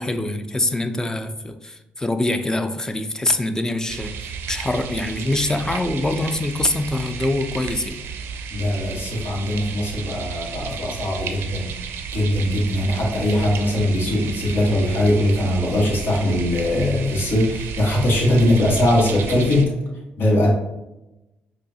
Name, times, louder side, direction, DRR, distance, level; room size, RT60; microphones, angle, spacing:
voice 1, 0.0-8.0, left 2 dB, 15° left, 8 dB, 0.4 m, -24 dB
sound 1, 3.9-19.7, right 6 dB, 75° right, 0.4 m, -33 dB
voice 2, 8.5-11.7 12.1-19.7 20.2-20.5, left 1 dB, 65° left, -3 dB, 1.4 m, -20 dB
4.9 x 2.3 x 2.8 m, 0.96 s
supercardioid pair, 65°, 4 cm